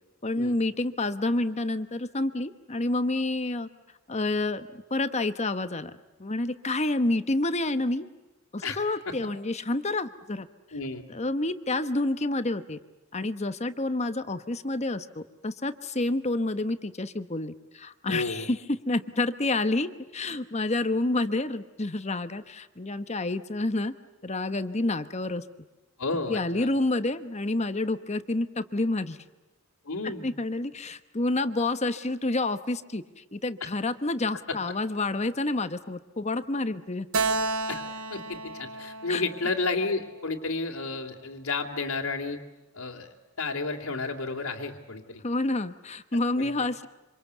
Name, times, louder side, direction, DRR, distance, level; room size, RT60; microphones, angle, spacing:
voice 1, 0.2-3.7 4.1-5.9 6.2-8.1 8.5-10.5 11.1-12.8 13.1-23.9 24.2-25.4 26.3-29.2 30.0-37.1 39.1-39.2 45.2-46.9, left 2 dB, 30° left, 10 dB, 1.1 m, -29 dB
voice 2, 10.7-11.0 18.1-18.5 26.0-26.7 29.8-30.3 37.7-37.8 38.1-42.4 42.7-43.1 43.4-45.2 46.4-46.5, left 3 dB, 75° left, -4 dB, 2.7 m, -31 dB
Keyboard (musical), 37.1-40.6, right 3 dB, 80° right, 1.8 m, -32 dB
26.5 x 26.5 x 8.2 m, 1.1 s
head